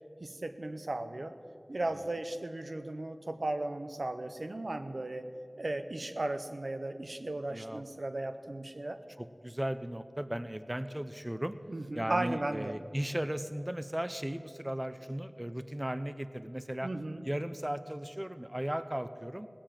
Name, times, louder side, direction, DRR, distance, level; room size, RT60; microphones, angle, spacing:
voice 1, 0.2-1.3 1.7-5.3 5.6-9.0 11.7-12.7 16.8-17.2, right 2 dB, 85° right, 8 dB, 0.7 m, -36 dB
voice 2, 7.5-7.9 9.2-11.5 11.9-16.9 17.2-19.5, right 1 dB, 20° right, 12 dB, 0.6 m, -36 dB
17.5 x 7.4 x 8.9 m, 2.3 s
wide cardioid pair, 45°, 0 cm